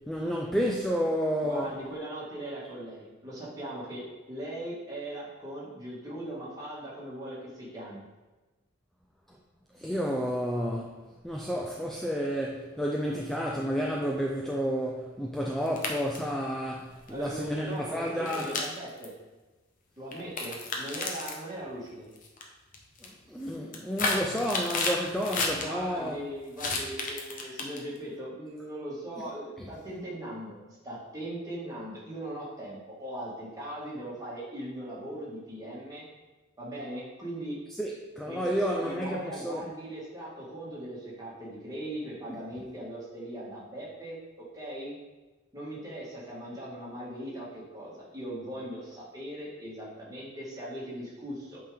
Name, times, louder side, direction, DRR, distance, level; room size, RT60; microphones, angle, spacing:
voice 1, 0.1-1.8 9.7-11.0 11.2-18.6 23.0-26.2 29.6-29.7 37.8-39.7, equal, ahead, -2 dB, 0.4 m, -31 dB
voice 2, 1.4-8.0 17.1-19.1 20.0-22.1 25.6-36.0 36.6-37.6 38.3-44.2 44.5-45.0 45.5-51.6, right 1 dB, 20° right, -6 dB, 1.8 m, -39 dB
sound 1, 15.7-16.3 17.1-17.2 18.3-19.0 20.1-21.4 22.2-22.4 22.7-23.1 23.5-25.6 26.6-28.0, left 3 dB, 45° left, 0.9 m, -31 dB
8.2 x 3.7 x 3.4 m, 1.2 s
head